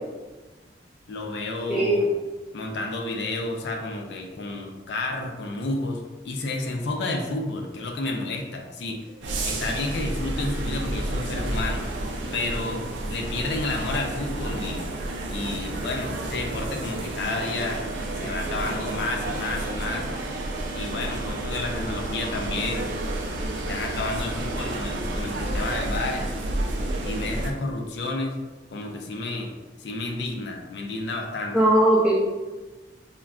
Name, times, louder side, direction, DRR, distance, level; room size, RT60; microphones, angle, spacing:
voice 1, 1.1-2.1 2.5-9.0 9.4-11.9 12.3-12.8 13.1-14.9 15.3-17.8 18.1-20.1 20.7-22.9 23.5-26.3 27.0-28.4 28.7-29.5 29.8-31.6, left 2 dB, 75° left, 2 dB, 0.4 m, -31 dB
voice 2, 1.7-2.0 31.5-32.2, right 1 dB, 5° right, -7 dB, 0.3 m, -19 dB
sound 1, 9.2-27.5, right 1 dB, 90° right, 0.4 m, -30 dB
3.6 x 2.1 x 2.3 m, 1.2 s
head